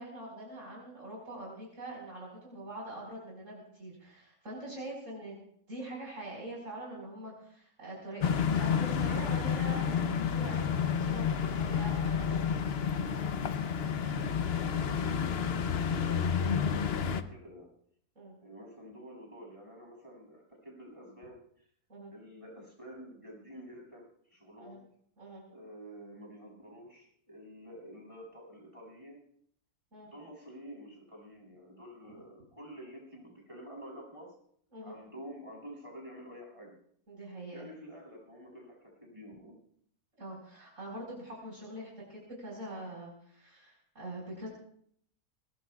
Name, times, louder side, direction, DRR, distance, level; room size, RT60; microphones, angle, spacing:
voice 1, 0.0-5.4 5.7-12.5 18.2-18.3 21.9-22.1 24.5-24.8 25.2-25.4 29.9-30.1 32.0-32.1 34.7-35.0 37.1-37.7 40.2-44.5, right 1 dB, 55° right, -4 dB, 5.2 m, -44 dB
sound 1, 8.2-17.2, left 7 dB, 50° left, 0.9 m, -30 dB
voice 2, 14.5-17.7 18.4-21.7 22.1-24.8 25.4-29.2 30.0-34.4 34.8-36.8 37.5-39.6, equal, 20° right, -1 dB, 7.4 m, -49 dB
24.0 x 20.5 x 2.4 m, 0.65 s
omnidirectional pair, 1.6 m